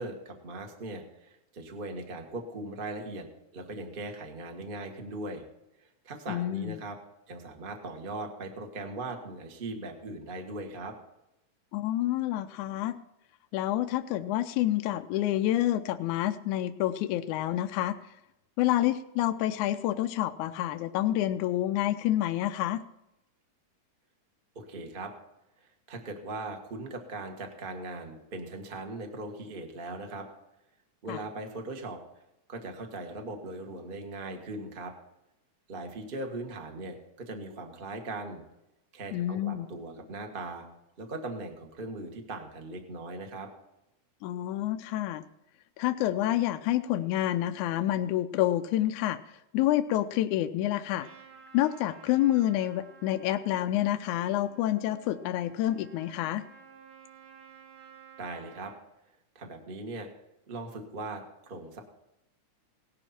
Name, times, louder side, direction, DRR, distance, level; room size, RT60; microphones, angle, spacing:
voice 1, 0.0-3.3 3.5-5.4 5.8-7.0 7.3-10.9 24.5-25.1 25.6-30.3 31.0-32.0 32.5-34.9 35.7-38.4 38.9-40.6 41.0-43.5 58.2-58.7 59.3-60.1 60.5-61.8, right 2 dB, 25° right, 3 dB, 1.1 m, -39 dB
voice 2, 6.3-6.8 11.7-13.0 13.5-18.0 18.6-22.8 31.1-31.2 39.1-39.7 44.2-45.2 45.8-49.2 49.5-51.1 51.5-56.4, left 13 dB, 80° left, 8 dB, 1.9 m, -28 dB
Trumpet, 50.9-58.8, right 7 dB, 90° right, 5.9 m, -53 dB
17.5 x 12.0 x 4.4 m, 0.89 s
omnidirectional pair, 3.7 m